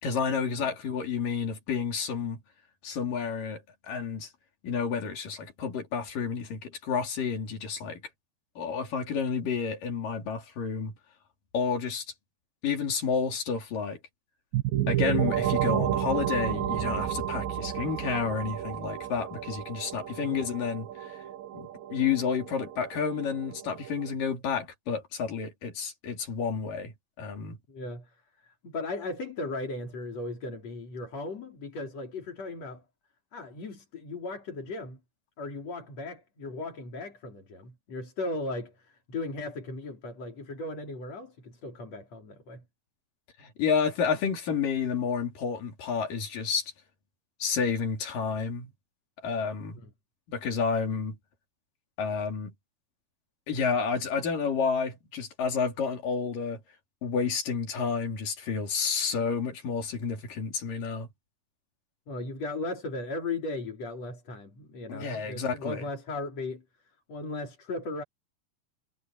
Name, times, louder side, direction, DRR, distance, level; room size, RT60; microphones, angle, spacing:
voice 1, 0.0-2.4 2.8-3.6 3.9-4.3 4.6-8.0 8.6-10.9 11.5-12.1 12.6-14.0 14.9-21.1 21.5-27.6 43.4-46.6 47.4-48.7 49.2-49.8 50.3-51.2 52.0-52.5 53.5-56.6 57.0-61.1 64.9-65.9, left 6 dB, 75° left, 5.1 m, -30 dB
sound 1, 14.5-24.1, right 11 dB, 90° right, 3.5 m, -31 dB
voice 2, 27.7-28.2 28.4-32.8 33.3-35.0 35.4-42.6 49.8-49.9 62.1-66.6 67.1-68.0, left 2 dB, 50° left, 5.0 m, -37 dB
omnidirectional pair, 3.8 m